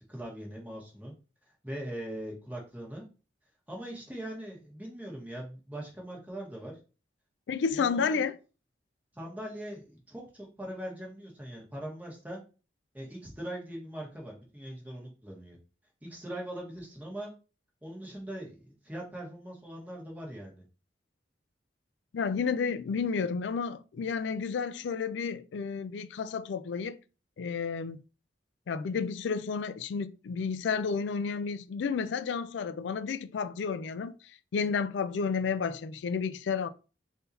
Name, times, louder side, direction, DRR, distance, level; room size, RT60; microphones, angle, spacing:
voice 1, 0.1-1.1 1.6-3.0 3.7-6.8 7.7-8.2 9.1-12.4 12.9-15.6 16.0-17.3 17.8-20.6, right 1 dB, 10° right, 1.3 m, -41 dB
voice 2, 7.5-8.4 22.1-27.0 27.4-28.0 28.7-34.2 34.5-36.7, left 5 dB, 85° left, 0.4 m, -31 dB
3.8 x 2.7 x 4.1 m
head